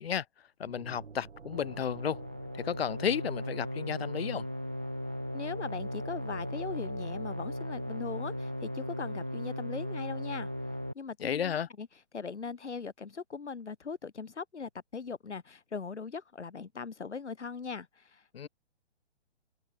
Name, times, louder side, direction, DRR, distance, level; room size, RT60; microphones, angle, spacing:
voice 1, 0.0-2.2 2.5-4.5 11.2-11.7 18.3-18.5, left 8 dB, 60° left, 2.4 m, -33 dB
sound 1, 0.6-4.4, right 5 dB, 75° right, 7.2 m, -52 dB
sound 2, 1.5-10.9, left 1 dB, 5° right, 0.3 m, -37 dB
voice 2, 5.3-10.5 10.9-11.9 12.1-18.5, left 5 dB, 75° left, 3.3 m, -40 dB
figure-of-eight pair, 135°, 35 cm